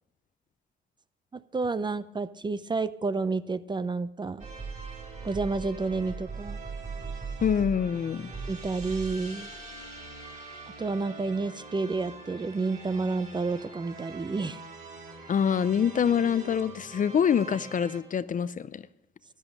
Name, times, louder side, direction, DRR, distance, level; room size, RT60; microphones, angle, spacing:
voice 1, 1.3-4.5 5.2-6.6 8.5-9.5 10.8-14.6, right 3 dB, 20° right, 14 dB, 0.5 m, -30 dB
sound 1, 4.4-18.0, right 3 dB, 40° right, 4.5 m, -41 dB
voice 2, 7.4-8.3 15.3-18.8, left 7 dB, 40° left, 16 dB, 0.5 m, -25 dB
12.0 x 10.5 x 5.3 m, 0.86 s
cardioid pair, 90°, 20 cm